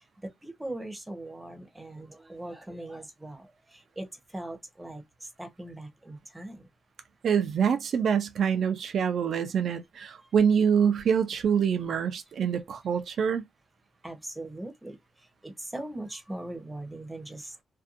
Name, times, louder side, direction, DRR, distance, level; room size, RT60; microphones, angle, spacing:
voice 1, 0.2-3.5 4.0-4.1 4.3-5.0 5.4-6.6 14.0-15.0 15.4-17.5, right 1 dB, 10° right, 0.8 m, -40 dB
voice 2, 7.2-13.4, right 7 dB, 70° right, 0.4 m, -25 dB
2.6 x 2.3 x 2.5 m
cardioid pair, 105°, 0 cm